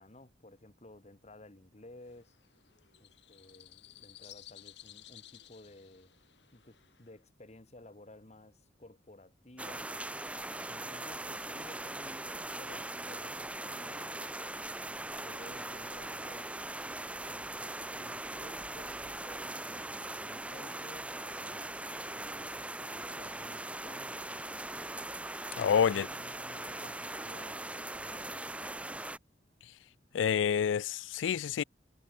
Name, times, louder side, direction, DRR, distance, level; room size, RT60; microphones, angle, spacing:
voice 1, 0.0-2.3 3.0-6.1 6.5-9.9 10.7-14.4 14.8-16.5 17.3-24.3 25.7-29.1, left 1 dB, 35° left, 1.5 m, -55 dB
sound 1, 2.0-7.2, left 14 dB, 70° left, 4.3 m, -56 dB
sound 2, 9.6-29.2, right 2 dB, 5° right, 0.8 m, -40 dB
voice 2, 25.6-26.1 30.1-31.6, left 8 dB, 90° left, 0.4 m, -28 dB
head